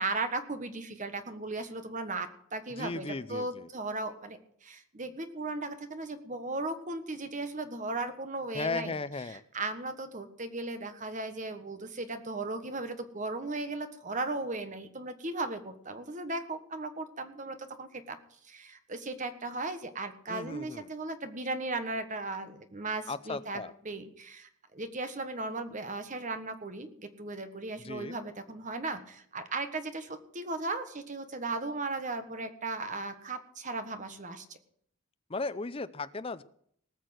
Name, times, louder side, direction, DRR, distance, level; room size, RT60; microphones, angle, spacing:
voice 1, 0.0-8.9 9.3-18.2 18.4-34.4, right 2 dB, 35° right, 9 dB, 1.4 m, -36 dB
voice 2, 2.7-3.7 8.5-9.4 20.3-20.9 23.1-23.7 27.8-28.2 35.3-36.4, left 3 dB, 25° left, 13 dB, 0.6 m, -36 dB
19.5 x 6.6 x 7.9 m, 0.65 s
head